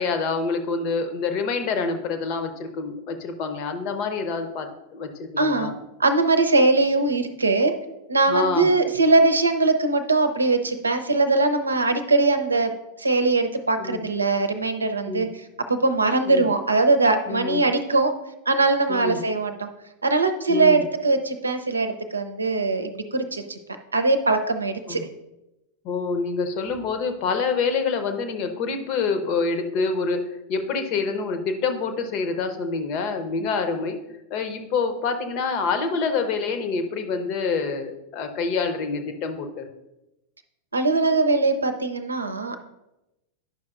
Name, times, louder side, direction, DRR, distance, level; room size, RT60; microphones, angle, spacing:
voice 1, 0.0-5.7 8.3-8.7 13.8-14.0 15.0-15.3 16.3-16.5 17.3-17.7 18.9-19.2 20.5-20.8 24.9-25.0 25.8-34.0 34.3-39.7, left 4 dB, 40° left, 7 dB, 0.9 m, -27 dB
voice 2, 5.4-5.7 6.0-7.7 8.1-12.7 13.0-18.1 18.5-19.7 20.0-23.6 23.9-25.0 33.4-33.5 40.7-42.6, right 3 dB, 80° right, 8 dB, 0.7 m, -21 dB
10.0 x 6.0 x 2.5 m, 0.94 s
figure-of-eight pair, 90°, 0 cm